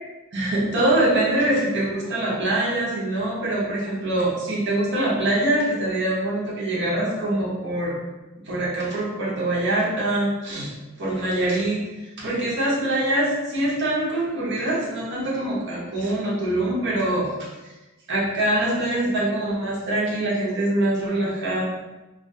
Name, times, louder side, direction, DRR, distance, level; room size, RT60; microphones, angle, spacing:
voice 1, 0.3-8.0 8.4-10.7 11.0-17.5 18.1-21.6, right 1 dB, 55° right, -5 dB, 0.8 m, -24 dB
2.4 x 2.3 x 2.6 m, 1.1 s
head